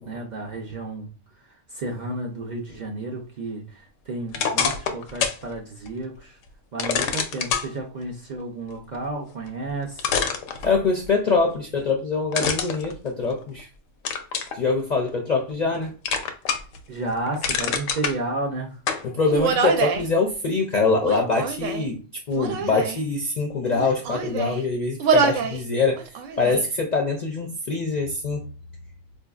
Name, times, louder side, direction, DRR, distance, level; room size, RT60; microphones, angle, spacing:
voice 1, 0.1-1.1 1.3-6.4 6.7-10.1 16.9-18.8, right 2 dB, 50° right, 0 dB, 0.5 m, -32 dB
sound 1, 4.3-5.4 5.9-6.0 6.8-7.7 9.5-9.6 10.0-11.1 12.3-13.6 14.1-14.6 15.1-15.8 16.1-16.8 17.1-18.2 18.9-19.1, left 6 dB, 90° left, 0.9 m, -26 dB
voice 2, 10.6-13.7 14.5-15.9 19.0-22.0 22.3-26.0 26.4-28.4, left 4 dB, 55° left, 1 dB, 0.4 m, -24 dB
Human voice, 19.2-20.1 21.0-21.9 22.3-23.0 23.7-24.6 25.0-25.6 26.0-26.6, right 5 dB, 85° right, 0.9 m, -25 dB
4.4 x 2.6 x 2.3 m, 0.38 s
omnidirectional pair, 1.3 m